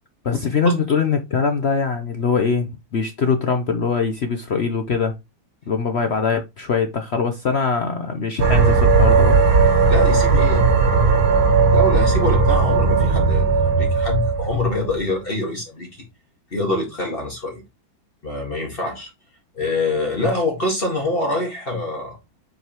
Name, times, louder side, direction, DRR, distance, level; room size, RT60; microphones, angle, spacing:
voice 1, 0.2-5.1 5.7-9.4, left 5 dB, 65° left, 0.6 m, -22 dB
sound 1, 8.4-15.0, right 4 dB, 90° right, 2.0 m, -16 dB
voice 2, 9.9-10.7 11.7-15.9 16.5-17.6 18.2-19.1 19.5-22.2, left 2 dB, 30° left, 1.9 m, -25 dB
7.8 x 5.2 x 3.0 m
omnidirectional pair, 2.1 m